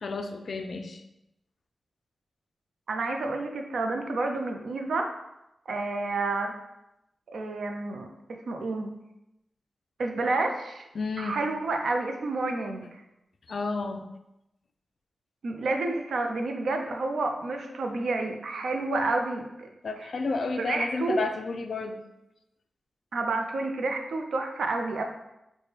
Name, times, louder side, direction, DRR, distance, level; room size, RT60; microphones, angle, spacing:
voice 1, 0.0-1.0 11.0-11.4 13.5-14.1 19.8-22.0, left 3 dB, 60° left, 7 dB, 0.3 m, -31 dB
voice 2, 2.9-5.1 5.7-6.5 7.3-8.1 8.5-8.9 10.0-10.8 11.2-13.0 15.4-19.7 20.6-21.2 23.1-25.0, right 3 dB, 80° right, 4 dB, 0.4 m, -29 dB
3.3 x 2.1 x 4.3 m, 0.89 s
wide cardioid pair, 140°, 0 cm